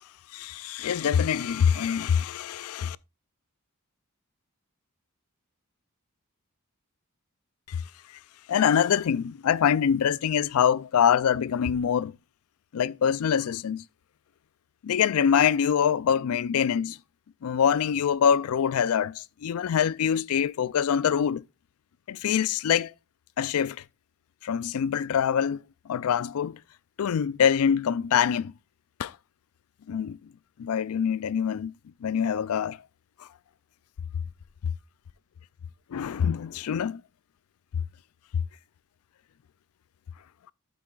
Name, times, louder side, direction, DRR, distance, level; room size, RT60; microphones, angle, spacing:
voice 1, 0.3-3.0 7.7-7.8 8.5-12.1 12.7-13.8 14.8-17.0 17.4-21.4 22.1-22.9 23.4-23.8 24.4-25.6 25.9-26.6 27.0-28.5 29.0-29.1 29.9-30.2 30.6-31.7 32.0-32.8 35.9-37.0, left 8 dB, 80° left, 0.4 m, -24 dB
12.0 x 7.7 x 2.4 m
head